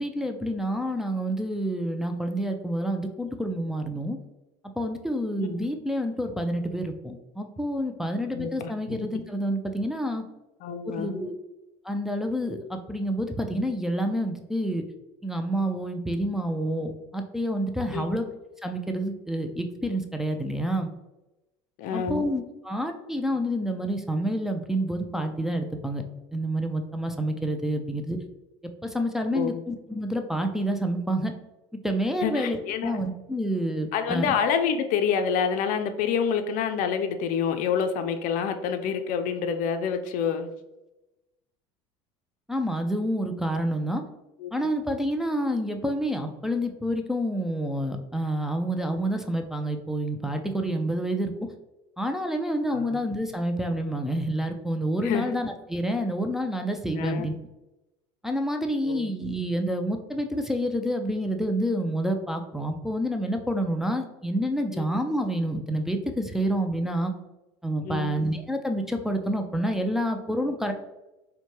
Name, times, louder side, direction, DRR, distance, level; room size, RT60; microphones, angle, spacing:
voice 1, 0.0-4.2 4.8-10.2 11.0-11.3 11.8-14.8 15.2-18.3 18.6-20.9 21.9-26.0 26.3-28.2 28.8-31.3 31.8-34.3 42.5-44.0 44.5-51.3 52.0-57.3 58.2-67.1 67.6-70.7, equal, 5° right, 4 dB, 0.4 m, -28 dB
voice 2, 8.3-9.0 10.6-11.3 17.9-18.2 21.8-22.3 29.3-29.6 32.2-33.0 33.9-40.5 44.4-44.5 52.7-53.0 55.0-55.4 57.0-57.3 58.8-59.1 64.7-64.9 67.8-68.2, left 7 dB, 60° left, 8 dB, 0.5 m, -28 dB
4.3 x 2.2 x 3.0 m, 0.99 s
hypercardioid pair, 85°, 16 cm